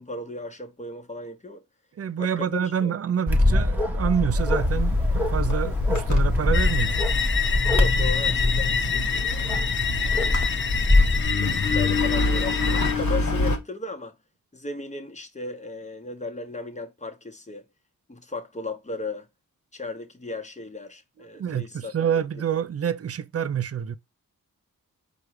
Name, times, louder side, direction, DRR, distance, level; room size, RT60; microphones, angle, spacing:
voice 1, 0.0-1.6 2.2-2.9 7.7-9.6 10.0-10.4 11.1-14.2 14.5-17.7 18.1-19.3 19.7-21.9, left 3 dB, 20° left, 1.0 m, -36 dB
voice 2, 2.0-7.0 21.3-24.0, right 8 dB, 45° right, 0.4 m, -27 dB
Bark, 3.3-11.3, left 2 dB, 5° right, 1.0 m, -23 dB
Engine, 4.3-13.6, left 3 dB, 60° left, 1.2 m, -28 dB
sound 1, 6.5-12.9, left 6 dB, 35° left, 0.4 m, -27 dB
4.8 x 2.3 x 4.8 m
cardioid pair, 50°, 34 cm